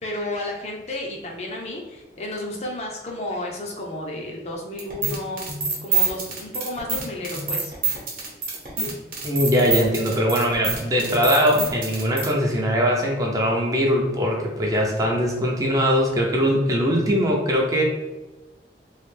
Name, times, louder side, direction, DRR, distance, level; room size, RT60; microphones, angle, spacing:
voice 1, 0.0-5.5 5.8-7.7, left 1 dB, 35° left, 0 dB, 0.5 m, -32 dB
sound 1, 4.8-12.3, right 4 dB, 50° right, 0.9 m, -26 dB
voice 2, 9.2-17.8, equal, 20° right, -1 dB, 0.5 m, -21 dB
3.1 x 2.4 x 3.2 m, 1.1 s
head